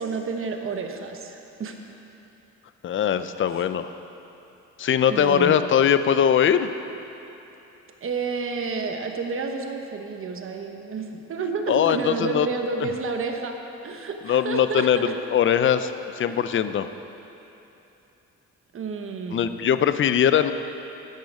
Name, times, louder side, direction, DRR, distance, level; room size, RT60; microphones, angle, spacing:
voice 1, 0.0-1.7 3.5-3.6 5.1-5.6 8.0-13.6 13.8-15.1 16.3-16.4 18.7-19.7, right 4 dB, 45° right, 4 dB, 1.1 m, -30 dB
voice 2, 2.8-3.9 4.8-6.7 11.7-12.5 14.3-15.0 15.3-16.9 19.3-20.5, left 9 dB, 40° left, 11 dB, 0.5 m, -21 dB
10.5 x 7.5 x 5.3 m, 3.0 s
cardioid pair, 90°, 30 cm